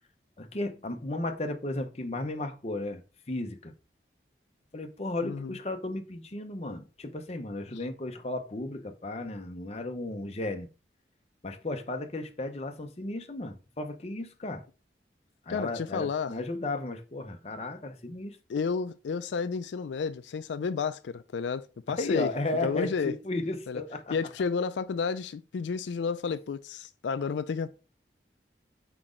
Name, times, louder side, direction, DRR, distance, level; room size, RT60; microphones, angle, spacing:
voice 1, 0.4-3.0 3.3-3.7 4.7-10.7 11.4-14.6 15.5-18.4 22.0-24.1, left 2 dB, 35° left, 0.7 m, -34 dB
voice 2, 5.2-5.5 15.5-16.3 18.5-22.3 22.6-23.2 23.7-23.8 24.1-27.7, left 5 dB, 90° left, 0.4 m, -31 dB
6.0 x 4.9 x 3.7 m
head